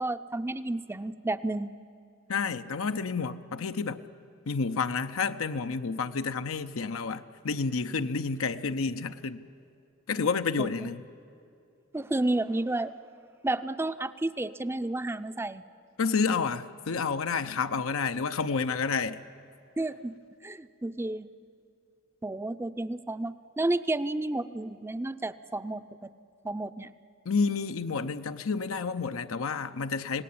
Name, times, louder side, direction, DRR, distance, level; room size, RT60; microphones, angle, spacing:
voice 1, 0.0-1.7 10.6-10.7 11.9-12.9 13.4-15.6 19.8-20.1 20.4-21.3 22.2-26.1 26.4-26.9, right 2 dB, 10° right, 12 dB, 0.5 m, -31 dB
voice 2, 2.3-4.0 4.5-9.4 10.1-11.0 16.0-19.2 27.2-30.2, left 5 dB, 85° left, 9 dB, 0.7 m, -30 dB
27.5 x 18.0 x 8.6 m, 2.6 s
head